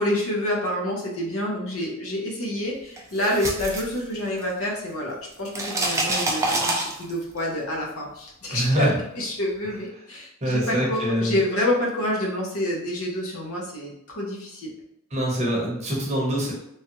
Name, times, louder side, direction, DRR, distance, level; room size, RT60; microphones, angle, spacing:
voice 1, 0.0-8.9 9.1-14.7, left 1 dB, 85° left, -2 dB, 0.8 m, -28 dB
sound 1, 3.0-4.7 4.9-7.4, right 2 dB, 15° right, 0.4 m, -27 dB
voice 2, 8.5-8.9 10.4-11.4 15.1-16.5, equal, 30° right, -3 dB, 0.8 m, -24 dB
3.1 x 2.4 x 2.8 m, 0.78 s
head